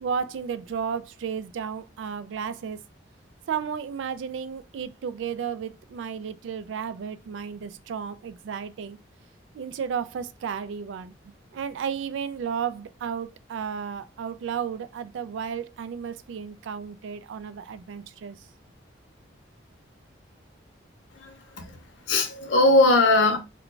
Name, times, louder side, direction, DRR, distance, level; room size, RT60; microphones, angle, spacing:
voice 1, 0.0-2.8 3.5-9.0 9.5-18.4, right 7 dB, 75° right, 0.3 m, -33 dB
voice 2, 21.1-21.8 22.1-23.4, left 2 dB, 75° left, 0.7 m, -20 dB
2.3 x 2.2 x 3.7 m
head